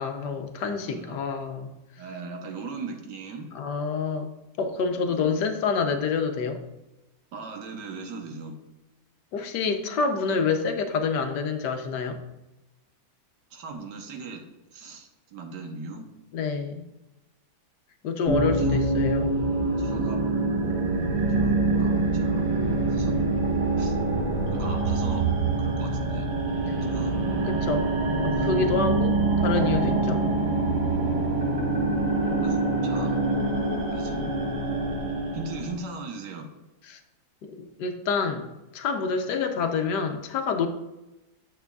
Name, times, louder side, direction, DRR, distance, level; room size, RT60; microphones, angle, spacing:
voice 1, 0.0-1.7 3.5-4.3 4.6-6.6 9.3-12.2 16.3-16.8 18.0-19.3 26.7-26.8 27.4-27.9 28.2-30.2 36.9-37.0 37.4-38.5 38.7-40.7, left 5 dB, 75° left, 6 dB, 1.3 m, -27 dB
voice 2, 0.8-1.2 2.0-3.5 4.8-5.3 7.3-8.6 13.5-14.4 14.7-16.1 18.6-18.8 19.8-20.2 20.7-20.8 21.4-22.5 22.9-23.2 23.8-24.0 24.5-25.3 25.6-26.3 26.8-27.1 28.4-28.6 32.3-33.2 33.9-34.3 35.3-36.5, right 3 dB, 80° right, 4 dB, 1.5 m, -39 dB
sound 1, 18.3-35.7, right 2 dB, 50° right, 1.5 m, -25 dB
9.1 x 7.0 x 2.3 m, 0.99 s
omnidirectional pair, 1.8 m